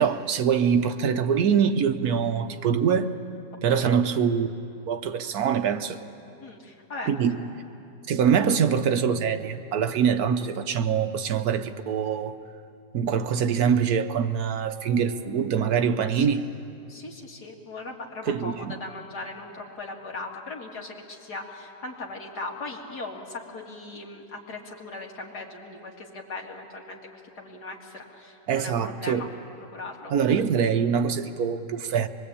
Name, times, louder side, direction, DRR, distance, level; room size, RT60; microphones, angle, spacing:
voice 1, 0.0-3.1 3.6-4.5 4.9-6.0 7.1-7.4 8.1-12.4 12.9-16.4 18.3-18.8 28.5-29.2 30.1-32.1, right 7 dB, 70° right, 8 dB, 1.4 m, -24 dB
voice 2, 6.4-7.1 16.1-16.4 16.9-29.3 29.7-30.1, left 3 dB, 80° left, 0 dB, 2.8 m, -39 dB
24.5 x 22.0 x 8.6 m, 2.6 s
omnidirectional pair, 1.7 m